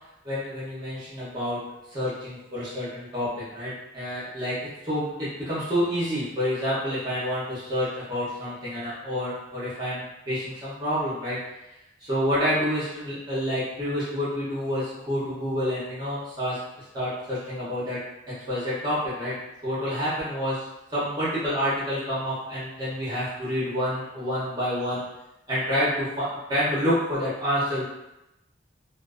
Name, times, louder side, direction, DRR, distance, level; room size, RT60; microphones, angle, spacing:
voice 1, 0.2-1.6 1.9-4.6 4.8-11.4 12.0-16.6 16.9-18.0 18.3-19.3 19.6-20.6 20.9-25.0 25.5-27.8, equal, 20° right, -10 dB, 0.7 m, -28 dB
2.5 x 2.3 x 2.4 m, 0.94 s
head